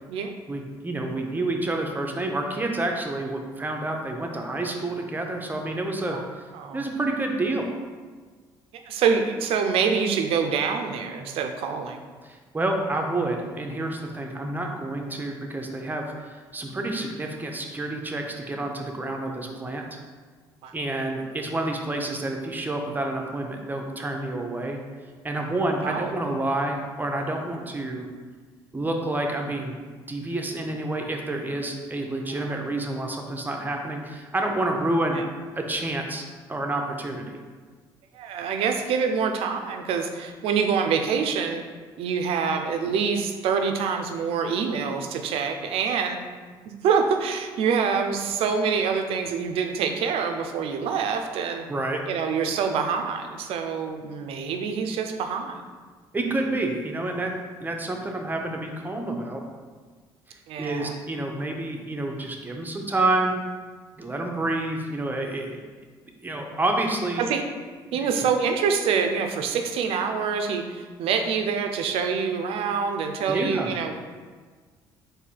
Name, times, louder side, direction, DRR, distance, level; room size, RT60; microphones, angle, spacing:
voice 1, 0.5-6.2 6.7-7.8 12.2-19.9 20.7-24.8 25.2-28.1 28.7-29.8 30.1-35.2 35.6-36.2 36.5-37.3 51.7-52.0 56.1-57.3 57.6-59.4 60.3-63.4 64.0-65.6 66.2-67.2 73.3-73.7, right 2 dB, 20° right, 2 dB, 0.7 m, -28 dB
voice 2, 8.9-12.0 20.6-20.7 25.8-26.1 32.4-32.6 35.1-35.2 38.1-41.6 42.0-46.2 46.7-51.7 52.1-55.6 60.5-61.0 67.2-67.4 67.9-73.9, right 6 dB, 70° right, 5 dB, 0.5 m, -26 dB
3.9 x 2.7 x 4.5 m, 1.5 s
supercardioid pair, 75°, 10 cm